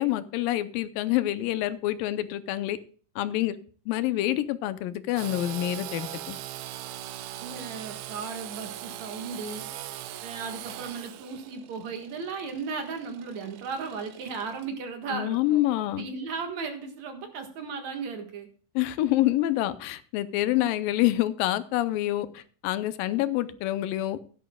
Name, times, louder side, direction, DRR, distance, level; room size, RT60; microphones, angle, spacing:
voice 1, 0.0-2.8 3.2-3.6 3.9-6.4 15.1-16.1 18.8-24.2, left 14 dB, 85° left, 14 dB, 2.5 m, -27 dB
Engine / Sawing, 5.2-14.7, right 13 dB, 80° right, 2.1 m, -41 dB
voice 2, 7.4-9.7 10.2-18.5, right 5 dB, 60° right, 5 dB, 2.7 m, -36 dB
16.0 x 11.0 x 2.3 m, 0.42 s
omnidirectional pair, 3.9 m